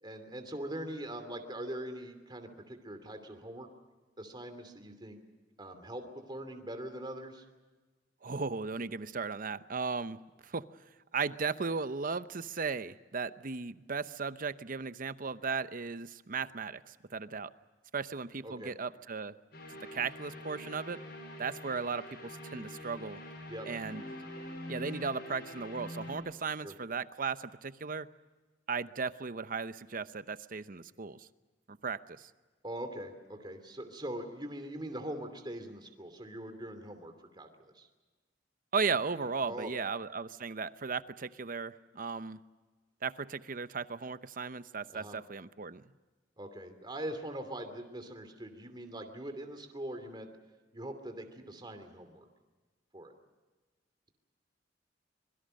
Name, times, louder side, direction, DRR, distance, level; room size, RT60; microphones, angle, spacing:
voice 1, 0.0-3.7 4.2-5.2 5.6-7.4 18.4-18.7 23.5-23.7 26.6-26.7 32.6-37.9 39.4-39.7 44.9-45.2 46.4-50.3 50.7-52.3 52.9-53.1, right 1 dB, 25° right, 7 dB, 2.8 m, -42 dB
voice 2, 8.2-10.6 11.1-17.5 17.9-19.3 19.9-21.0 21.4-23.2 23.7-24.0 24.7-28.1 28.7-31.3 31.7-32.3 38.7-42.4 43.0-45.8, right 5 dB, 50° right, 13 dB, 0.8 m, -36 dB
sound 1, 19.5-26.2, left 1 dB, 60° left, 6.6 m, -45 dB
25.5 x 23.0 x 6.5 m, 1.3 s
head